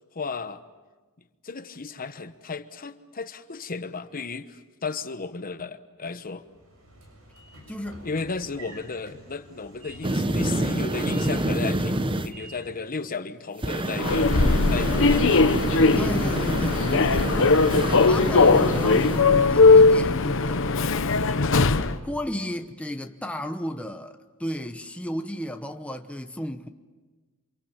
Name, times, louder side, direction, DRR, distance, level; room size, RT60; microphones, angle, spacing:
voice 1, 0.1-0.6 1.4-6.4 8.0-14.3 14.7-15.4, left 4 dB, 40° left, 1.0 m, -34 dB
Train / Sliding door, 6.5-13.0, right 1 dB, 75° right, 7.5 m, -48 dB
voice 2, 7.7-8.0 15.9-20.7 22.0-26.7, equal, 5° left, 0.9 m, -33 dB
sound 1, 10.0-12.3 13.6-19.2, right 1 dB, 25° right, 1.0 m, -28 dB
Human voice / Subway metro underground, 14.0-22.0, left 3 dB, 65° left, 1.0 m, -19 dB
28.5 x 26.5 x 7.4 m
head